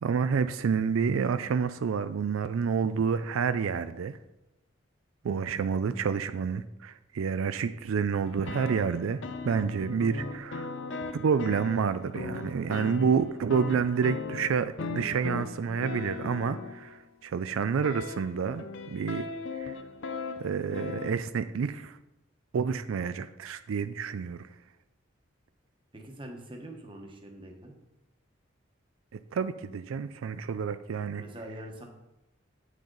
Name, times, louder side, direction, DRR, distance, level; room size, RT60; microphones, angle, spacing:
voice 1, 0.0-4.2 5.2-10.7 11.1-18.6 18.9-19.3 19.6-19.8 20.4-22.0 22.5-24.5 29.3-31.2, right 6 dB, 90° right, 12 dB, 0.4 m, -29 dB
sound 1, 8.2-17.0 17.8-21.1, left 4 dB, 65° left, 0.6 m, -38 dB
voice 2, 25.9-27.7 31.2-31.9, right 1 dB, 25° right, 2 dB, 1.2 m, -43 dB
8.7 x 6.4 x 3.9 m, 0.93 s
head